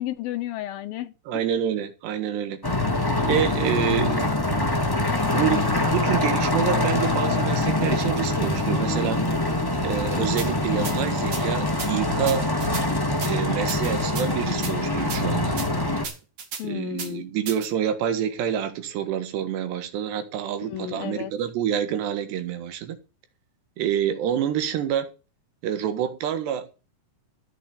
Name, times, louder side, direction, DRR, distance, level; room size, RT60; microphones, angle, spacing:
voice 1, 0.0-1.5 16.6-17.2 20.7-21.3, left 13 dB, 75° left, 2.4 m, -32 dB
voice 2, 1.3-2.6 3.1-4.3 5.1-9.2 9.8-12.5 13.3-15.6 16.6-23.0 23.8-25.1 25.6-26.7, right 9 dB, 80° right, 3.7 m, -27 dB
sound 1, 2.6-16.0, left 2 dB, 25° left, 0.4 m, -24 dB
sound 2, 10.4-10.5 10.8-11.0 11.3-11.4 11.8-11.9 12.3-12.8 13.2-13.3 13.7-14.3 14.6-14.7 15.1-15.2 15.6-15.7 16.0-16.6 17.0-17.1 17.5-17.7, right 6 dB, 50° right, 3.2 m, -34 dB
14.5 x 7.2 x 6.7 m
omnidirectional pair, 4.8 m